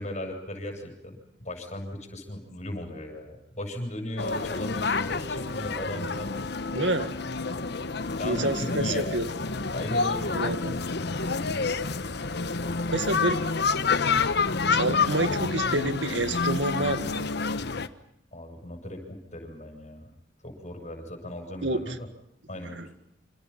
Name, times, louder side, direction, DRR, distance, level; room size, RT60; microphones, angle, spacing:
voice 1, 0.0-6.3 7.9-10.4 18.3-20.1 20.4-22.0 22.5-22.8, left 1 dB, 40° left, 4 dB, 7.5 m, -37 dB
sound 1, 4.2-17.9, left 4 dB, 65° left, 1.3 m, -28 dB
voice 2, 6.7-7.1 8.2-9.3 10.3-10.7 12.9-13.4 14.7-17.3 21.6-21.8 22.8-22.9, right 2 dB, 75° right, 10 dB, 2.0 m, -28 dB
28.0 x 27.0 x 5.8 m, 0.80 s
head